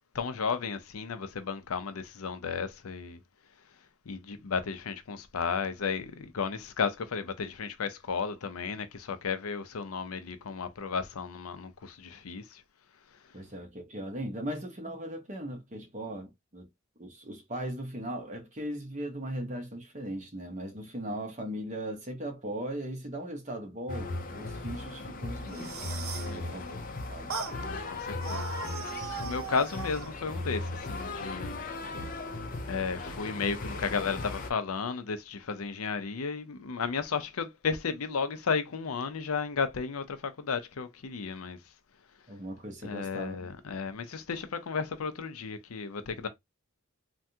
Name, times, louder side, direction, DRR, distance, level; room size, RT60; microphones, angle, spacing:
voice 1, 0.1-3.2 4.1-12.6 26.3-26.8 27.5-28.5 29.2-31.6 32.7-41.6 42.8-46.3, left 5 dB, 85° left, 0.6 m, -34 dB
voice 2, 13.3-16.7 17.0-27.3 42.3-43.5, right 1 dB, 35° right, 0.9 m, -38 dB
sound 1, 23.9-34.5, left 2 dB, 40° left, 0.5 m, -37 dB
sound 2, 25.4-26.4 27.3-27.6 28.2-30.1, right 5 dB, 75° right, 0.6 m, -38 dB
3.4 x 2.2 x 2.7 m
head